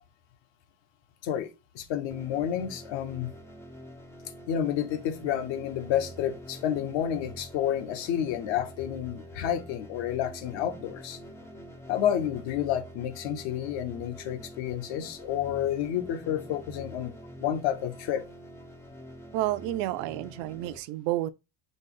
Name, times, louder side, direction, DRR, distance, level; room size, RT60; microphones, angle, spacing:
voice 1, 1.2-3.3 4.5-11.2 11.9-17.1 17.4-18.2, left 10 dB, 60° left, 0.9 m, -30 dB
sound 1, 2.1-20.8, equal, 5° left, 0.3 m, -46 dB
voice 2, 19.3-21.3, right 15 dB, 65° right, 0.5 m, -30 dB
4.1 x 3.4 x 3.7 m
cardioid pair, 145°, 49 cm